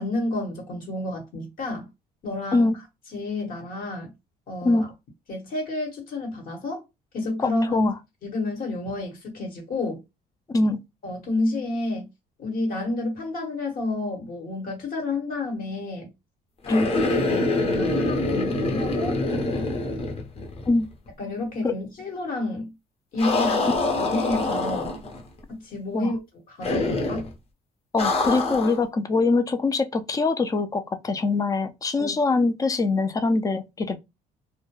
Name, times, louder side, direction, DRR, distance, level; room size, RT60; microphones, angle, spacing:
voice 1, 0.0-1.9 2.2-2.7 3.1-4.1 4.5-4.9 5.3-6.8 7.1-7.9 8.2-10.0 11.0-12.1 12.4-16.1 16.7-16.8 17.1-19.2 21.2-22.7 23.1-23.7 24.0-24.9 25.5-26.2 26.5-27.3 32.0-32.1, left 2 dB, 55° left, 1.1 m, -30 dB
voice 2, 7.4-7.9 10.5-10.8 16.7-16.9 20.7-20.9 21.6-21.7 25.9-26.1 27.9-34.0, left 3 dB, 20° left, 0.3 m, -23 dB
sound 1, 16.6-20.8 21.1-21.2 23.2-25.2 26.6-27.3 28.0-28.8, left 2 dB, 35° left, 0.7 m, -25 dB
2.2 x 2.1 x 3.0 m
cardioid pair, 110°, 17 cm